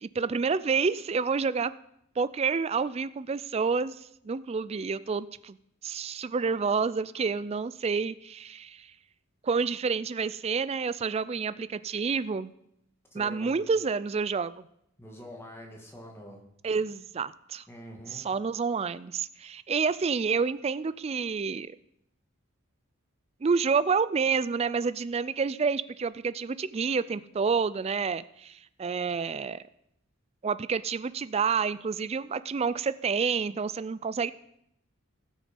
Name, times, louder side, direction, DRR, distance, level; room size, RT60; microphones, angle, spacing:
voice 1, 0.0-1.7 2.2-4.0 4.2-5.6 5.8-8.9 9.4-12.5 13.1-14.5 16.6-17.6 18.1-21.7 23.4-29.6 30.4-34.3, right 5 dB, 30° right, 16 dB, 0.3 m, -29 dB
voice 2, 13.1-13.6 15.0-16.4 16.7-16.8 17.7-18.3, left 1 dB, 10° left, 1 dB, 1.9 m, -45 dB
17.0 x 6.3 x 5.3 m, 0.76 s
head